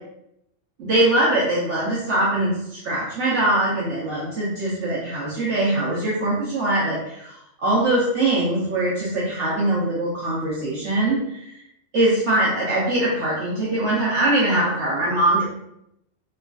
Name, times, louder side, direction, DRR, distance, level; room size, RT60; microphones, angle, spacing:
voice 1, 0.8-7.3 7.6-11.5 11.9-15.4, right 1 dB, 65° right, -6 dB, 1.1 m, -22 dB
4.7 x 2.4 x 2.3 m, 0.80 s
omnidirectional pair, 1.3 m